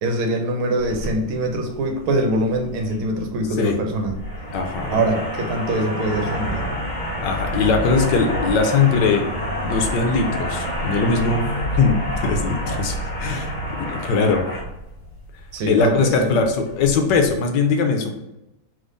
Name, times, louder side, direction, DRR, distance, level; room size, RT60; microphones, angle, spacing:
voice 1, 0.0-4.2 4.9-6.6 15.5-16.4, right 1 dB, 75° right, 3 dB, 1.6 m, -23 dB
sound 1, 0.8-17.3, equal, 55° left, 0.5 m, -29 dB
voice 2, 4.5-5.1 7.2-9.2 9.6-11.4 11.8-14.4 15.7-18.2, left 4 dB, 70° left, 4 dB, 1.1 m, -20 dB
3.5 x 3.5 x 3.8 m, 0.94 s
omnidirectional pair, 2.3 m